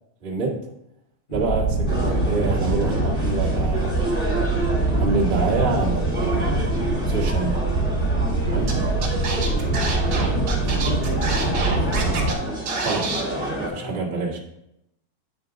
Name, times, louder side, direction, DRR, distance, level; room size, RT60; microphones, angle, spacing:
voice 1, 0.2-0.6 1.3-4.0 4.9-6.5 7.1-7.7 8.4-8.7 12.8-13.1 13.5-14.4, right 3 dB, 75° right, -5 dB, 0.5 m, -26 dB
sound 1, 1.3-12.3, right 2 dB, 35° left, 0.7 m, -24 dB
sound 2, 1.9-13.7, right 1 dB, ahead, 0.9 m, -29 dB
Scratching (performance technique), 8.7-8.8 9.0-12.3 12.7-13.2, right 4 dB, 55° right, 1.2 m, -28 dB
voice 2, 10.1-11.6 13.8-14.0, left 2 dB, 75° left, -4 dB, 4.7 m, -35 dB
9.5 x 3.9 x 5.0 m, 0.83 s
omnidirectional pair, 4.2 m